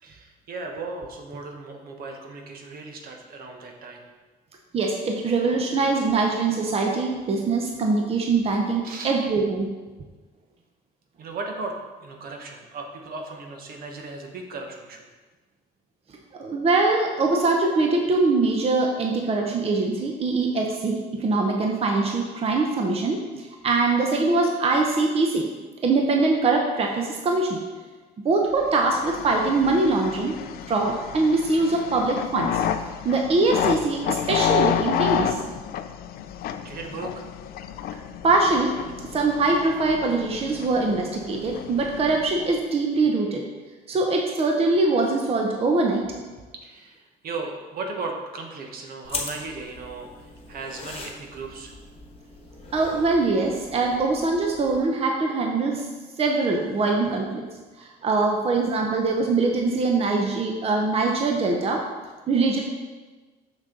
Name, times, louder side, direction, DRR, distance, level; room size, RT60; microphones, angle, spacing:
voice 1, 0.0-4.0 8.8-9.1 11.2-11.7 12.0-15.0 36.6-37.2 46.6-51.8, right 3 dB, 60° right, 2 dB, 1.2 m, -36 dB
voice 2, 4.7-9.7 16.4-25.5 25.8-27.6 28.2-30.4 30.7-32.6 33.0-35.4 38.2-38.8 39.1-43.4 43.9-46.1 52.7-55.9 56.2-57.4 57.8-61.8 62.3-62.6, right 3 dB, 35° right, 1 dB, 0.9 m, -23 dB
sound 1, 28.7-42.6, left 9 dB, 65° left, 0.5 m, -30 dB
sound 2, 49.0-54.8, left 3 dB, 35° left, 1.2 m, -40 dB
6.5 x 6.2 x 3.9 m, 1.3 s
cardioid pair, 110°, 17 cm